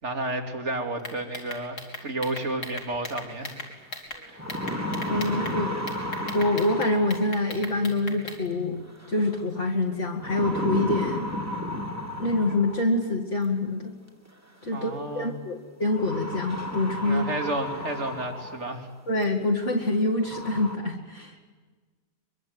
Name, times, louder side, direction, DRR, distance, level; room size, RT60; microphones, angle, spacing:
voice 1, 0.0-3.6 4.2-4.4 14.7-15.4 17.0-18.9, right 2 dB, 45° right, 4 dB, 3.2 m, -31 dB
sound 1, 1.0-4.2 4.5-5.6 5.9-8.4, left 2 dB, 75° left, 4.6 m, -38 dB
sound 2, 3.6-3.7 4.2-7.6 9.0-9.4 10.2-13.0 14.3-14.4 15.9-18.7 19.2-19.3 19.9-20.0 20.2-20.8, left 1 dB, 10° right, 2.9 m, -33 dB
voice 2, 5.1-5.9 6.3-11.3 12.2-13.9 14.6-17.3 19.1-21.3, left 2 dB, 45° left, -1 dB, 2.5 m, -26 dB
24.0 x 23.0 x 9.4 m, 1.4 s
omnidirectional pair, 1.7 m